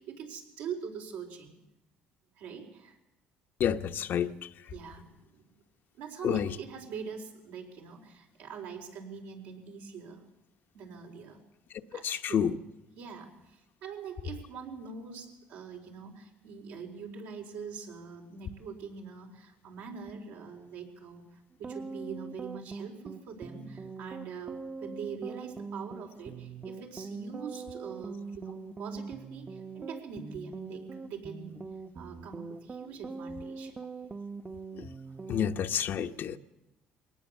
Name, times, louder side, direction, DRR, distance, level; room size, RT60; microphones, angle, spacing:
voice 1, 0.0-1.6 2.4-3.0 4.7-5.5 6.0-10.2 10.7-11.4 11.9-12.5 13.0-31.6 31.9-33.7, right 6 dB, 85° right, 1 dB, 4.2 m, -43 dB
voice 2, 3.6-4.3 6.2-6.5 12.0-12.6 34.7-34.8 35.3-36.4, left 9 dB, 60° left, 8 dB, 0.9 m, -29 dB
sound 1, 21.5-35.5, right 4 dB, 30° right, 0.9 m, -42 dB
22.5 x 18.0 x 7.1 m, 0.98 s
supercardioid pair, 85°, 4 cm